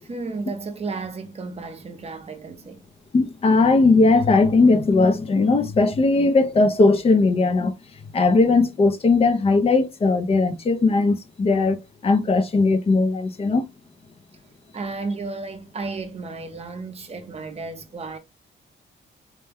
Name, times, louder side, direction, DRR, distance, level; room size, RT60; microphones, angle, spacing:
voice 1, 0.0-2.8 14.7-18.2, right 3 dB, 30° right, 0.8 m, -33 dB
voice 2, 3.1-7.7 8.1-13.7, left 3 dB, 30° left, 0.5 m, -18 dB
4.3 x 2.2 x 3.4 m
wide cardioid pair, 160°, 20 cm